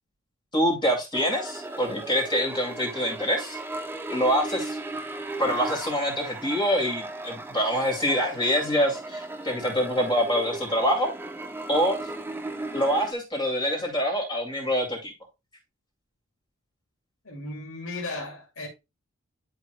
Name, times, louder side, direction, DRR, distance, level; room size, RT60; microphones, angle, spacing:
voice 1, 0.5-3.6 4.1-4.8 5.4-11.1 11.7-12.0 12.7-15.1, equal, 20° left, 2.4 m, -25 dB
sound 1, 1.1-13.1, right 2 dB, 10° right, 0.6 m, -36 dB
voice 2, 17.2-18.7, left 2 dB, 60° left, 2.4 m, -35 dB
11.0 x 4.8 x 2.2 m
head